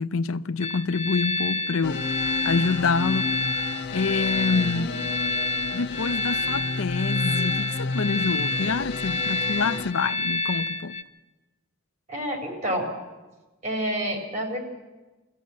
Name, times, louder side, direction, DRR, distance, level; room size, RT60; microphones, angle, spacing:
voice 1, 0.0-3.3 3.9-4.9 5.7-11.0, left 4 dB, 75° left, 0.6 m, -26 dB
sound 1, 0.6-11.0, left 2 dB, 30° left, 1.0 m, -29 dB
sound 2, 1.8-9.9, left 3 dB, 50° left, 1.2 m, -32 dB
voice 2, 4.5-4.9 12.1-12.9 13.6-14.6, equal, 35° right, 4.1 m, -29 dB
23.0 x 15.0 x 8.4 m
head